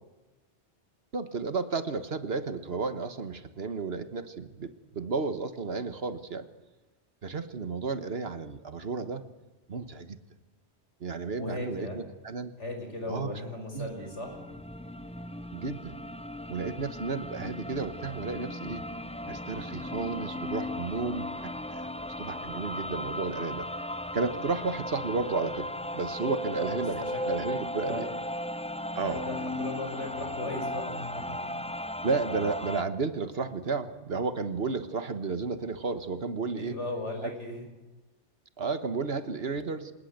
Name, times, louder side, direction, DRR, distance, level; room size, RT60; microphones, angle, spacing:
voice 1, 1.1-6.5 7.2-9.2 9.7-10.2 11.0-12.5 13.1-13.3 13.7-13.9 15.5-15.9 16.5-18.8 19.3-23.7 24.1-28.1 28.9-29.2 32.0-36.7 37.2-37.3 38.6-39.9, right 4 dB, 60° right, 11 dB, 1.6 m, -33 dB
voice 2, 11.4-12.0 12.6-14.4 26.6-27.4 27.9-28.1 29.0-31.5 36.5-37.7, left 2 dB, 90° left, 3 dB, 5.9 m, -37 dB
sound 1, 13.7-32.8, left 1 dB, 10° left, 0.5 m, -36 dB
26.0 x 19.0 x 8.1 m, 1.1 s
omnidirectional pair, 1.2 m